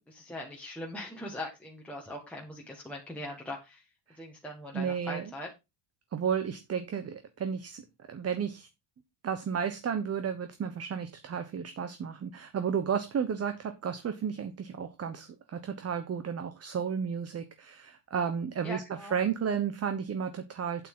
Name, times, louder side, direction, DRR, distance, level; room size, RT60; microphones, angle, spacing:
voice 1, 0.1-3.9 4.2-5.5 18.6-19.2, left 1 dB, 5° left, -2 dB, 1.7 m, -41 dB
voice 2, 4.7-5.2 6.1-8.7 9.2-18.8 19.1-20.9, right 7 dB, 30° right, 9 dB, 1.0 m, -33 dB
8.8 x 8.1 x 3.8 m, 0.24 s
cardioid pair, 145°, 50 cm